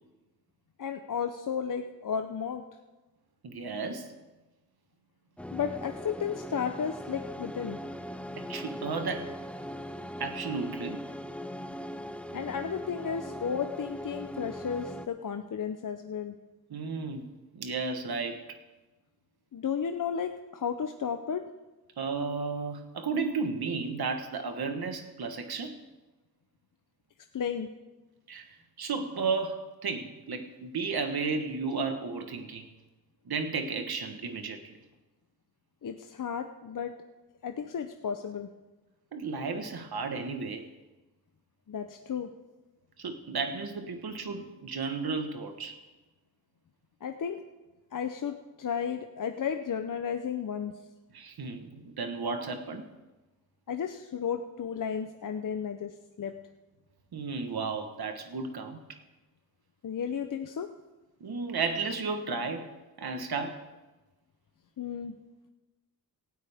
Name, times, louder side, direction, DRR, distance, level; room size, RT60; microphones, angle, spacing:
voice 1, 0.8-2.7 5.5-7.8 12.3-16.3 19.5-21.4 27.3-27.7 35.8-37.0 37.4-38.5 41.7-42.3 47.0-47.4 47.9-50.7 53.7-55.9 56.2-56.3 59.8-60.7 64.8-65.2, left 7 dB, 55° left, 6 dB, 0.7 m, -33 dB
voice 2, 3.4-4.1 8.4-9.3 10.2-11.0 16.7-17.2 17.5-18.6 22.0-25.8 28.3-28.5 28.8-32.6 33.3-34.8 39.1-40.6 43.0-45.8 51.1-52.8 57.1-58.8 61.2-62.6 63.0-63.6, right 4 dB, 75° right, 6 dB, 1.4 m, -33 dB
sound 1, 5.4-15.1, equal, 5° left, 0.6 m, -40 dB
18.0 x 13.0 x 3.5 m, 1.1 s
wide cardioid pair, 90°, 38 cm